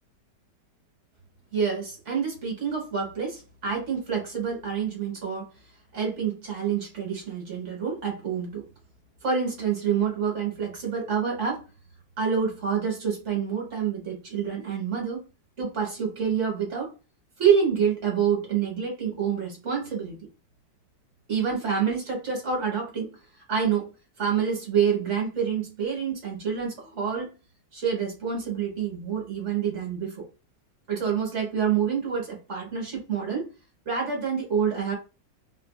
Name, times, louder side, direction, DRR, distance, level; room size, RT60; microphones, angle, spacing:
voice 1, 1.5-5.5 5.9-8.6 9.2-11.6 12.2-15.3 15.6-16.9 17.4-20.3 21.3-23.2 23.5-23.9 24.2-27.3 27.7-30.2 30.9-33.5 33.8-34.9, right 7 dB, 45° right, 1.3 m, -27 dB
3.1 x 2.5 x 2.2 m
omnidirectional pair, 1.9 m